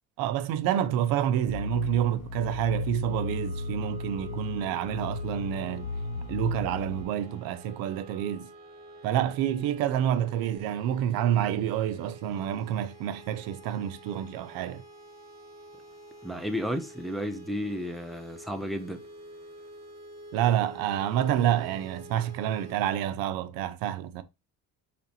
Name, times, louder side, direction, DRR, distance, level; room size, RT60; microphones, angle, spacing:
voice 1, 0.2-5.9 6.3-8.5 9.0-14.8 20.3-24.2, right 11 dB, 75° right, 0.6 m, -28 dB
sound 1, 1.5-7.0, left 3 dB, 60° left, 0.5 m, -35 dB
sound 2, 3.0-22.9, right 1 dB, 15° right, 1.0 m, -48 dB
voice 2, 16.2-19.0, equal, ahead, 0.4 m, -33 dB
4.1 x 3.3 x 2.6 m
cardioid pair, 125°, 35 cm